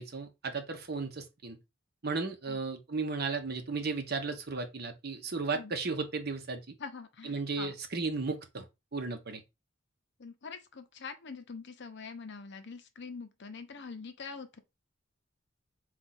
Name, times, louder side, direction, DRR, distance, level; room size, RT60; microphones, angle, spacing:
voice 1, 0.0-1.6 2.0-6.6 7.2-8.6 8.9-9.4, right 4 dB, 50° right, 0.9 m, -35 dB
voice 2, 6.8-7.7 10.2-14.6, left 5 dB, 60° left, 0.7 m, -44 dB
4.5 x 2.4 x 4.0 m
head